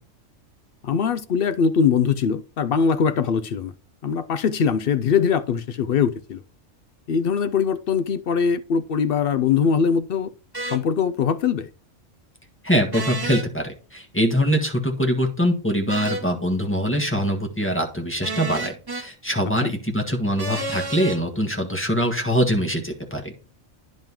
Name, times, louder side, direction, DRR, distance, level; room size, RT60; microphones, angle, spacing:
voice 1, 0.8-3.7 4.0-6.4 7.1-10.3 10.6-11.7 19.6-19.7, left 6 dB, 60° left, 0.6 m, -22 dB
sound 1, 10.5-10.8 12.9-13.5 15.9-16.3 18.2-19.1 20.4-21.2, right 2 dB, 20° right, 1.0 m, -30 dB
voice 2, 12.6-23.3, equal, 10° left, 1.5 m, -23 dB
10.5 x 5.3 x 2.9 m
omnidirectional pair, 1.4 m